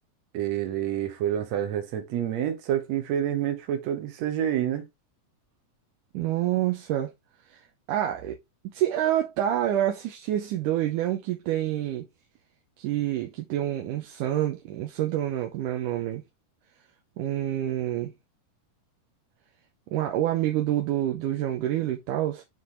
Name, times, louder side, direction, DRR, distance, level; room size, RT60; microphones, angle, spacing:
voice 1, 0.3-4.9, right 10 dB, 60° right, 2.3 m, -28 dB
voice 2, 6.1-7.1 7.5-7.6 7.9-8.4 8.7-12.1 12.8-16.2 17.2-18.1 19.9-22.4, right 12 dB, 75° right, 2.4 m, -27 dB
8.0 x 4.6 x 3.5 m
omnidirectional pair, 3.8 m